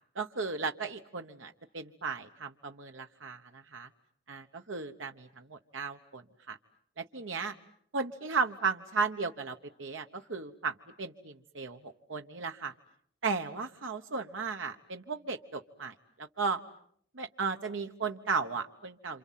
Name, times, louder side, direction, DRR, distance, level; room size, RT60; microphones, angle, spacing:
voice 1, 0.1-3.9 4.3-6.6 7.0-7.5 7.9-12.7 13.2-16.6 17.1-19.2, right 4 dB, 75° right, 5 dB, 1.2 m, -35 dB
28.5 x 27.5 x 7.5 m, 0.67 s
head